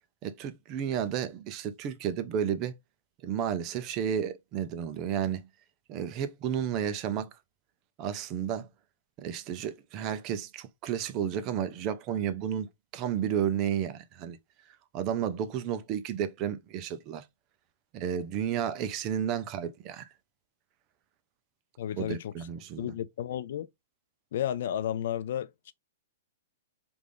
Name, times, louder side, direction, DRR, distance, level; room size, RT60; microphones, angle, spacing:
voice 1, 0.2-2.7 3.2-5.5 5.9-7.3 8.0-8.7 9.2-12.7 12.9-14.4 14.9-17.2 17.9-20.0 22.0-22.9, right 9 dB, 30° right, 0.4 m, -32 dB
voice 2, 21.8-22.3 22.8-23.7 24.3-25.7, left 10 dB, 60° left, 0.3 m, -32 dB
3.4 x 2.5 x 3.3 m
hypercardioid pair, 160°, 0 cm